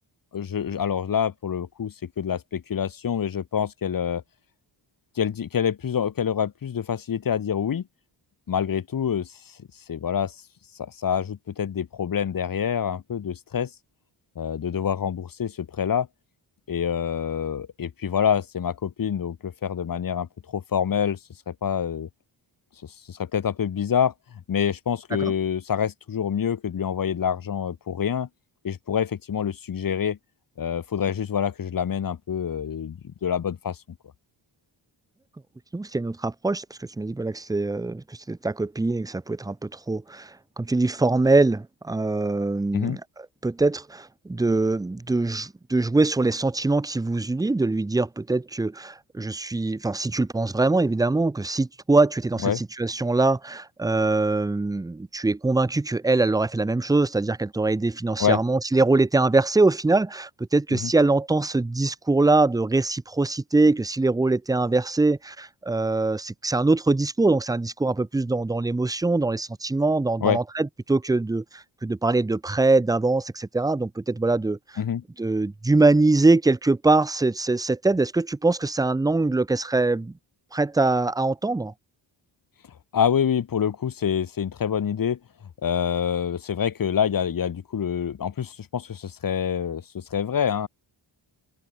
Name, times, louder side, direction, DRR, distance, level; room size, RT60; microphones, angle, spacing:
voice 1, 0.3-4.2 5.2-7.8 8.5-9.3 9.9-10.3 10.8-13.7 14.4-16.1 16.7-20.3 20.5-21.2 21.5-22.1 23.1-24.1 24.5-28.3 28.6-30.2 30.6-33.8 42.7-43.0 52.4-52.6 58.2-58.4 60.7-60.9 70.2-70.4 74.8-75.0 82.9-85.2 85.6-90.7, left 8 dB, 45° left, 1.0 m, -26 dB
voice 2, 35.7-43.0 43.4-74.6 75.2-80.1 80.5-81.7, right 3 dB, 10° right, 0.4 m, -23 dB
open air
cardioid pair, 85°, 47 cm